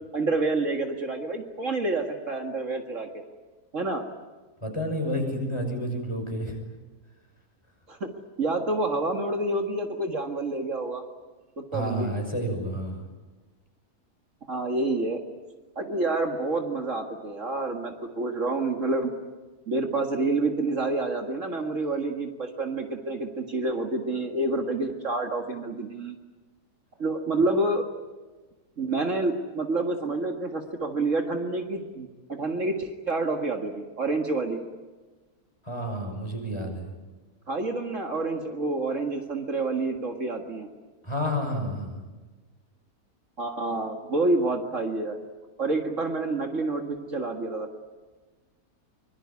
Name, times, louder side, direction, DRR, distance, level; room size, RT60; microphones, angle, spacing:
voice 1, 0.1-3.2 3.7-4.0 7.9-8.1 8.4-11.0 11.6-12.1 14.5-15.2 15.8-19.1 19.7-26.2 27.0-27.8 28.8-34.6 37.5-40.7 43.4-45.2 45.6-47.9, right 2 dB, 55° right, 4 dB, 2.2 m, -28 dB
voice 2, 4.6-6.6 11.7-13.1 35.6-36.9 41.0-42.0, equal, 20° left, 3 dB, 6.2 m, -30 dB
24.5 x 23.5 x 9.6 m, 1.3 s
omnidirectional pair, 1.6 m